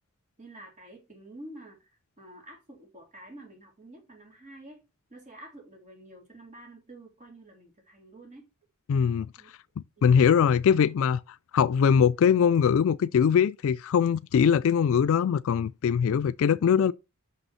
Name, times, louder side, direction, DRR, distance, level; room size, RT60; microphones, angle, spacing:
voice 1, 0.4-1.9 2.2-8.5 9.4-9.5, right 1 dB, 35° right, 3.3 m, -49 dB
voice 2, 8.9-9.3 10.0-11.2 11.5-16.9, left 7 dB, 65° left, 0.3 m, -22 dB
6.2 x 5.4 x 5.6 m
head